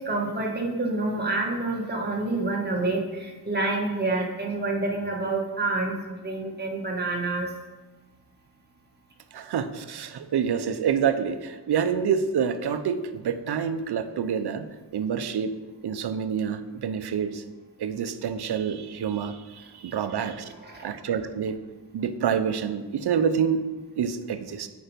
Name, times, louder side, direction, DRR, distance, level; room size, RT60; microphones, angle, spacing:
voice 1, 0.0-7.5 20.5-20.9, right 2 dB, 25° right, -1 dB, 1.6 m, -28 dB
voice 2, 9.3-14.7 14.9-15.5 15.8-17.4 17.8-20.5 20.8-21.6 21.9-23.6 24.0-24.7, right 7 dB, 70° right, 10 dB, 0.7 m, -27 dB
8.7 x 5.2 x 5.2 m, 1.2 s
wide cardioid pair, 110°, 41 cm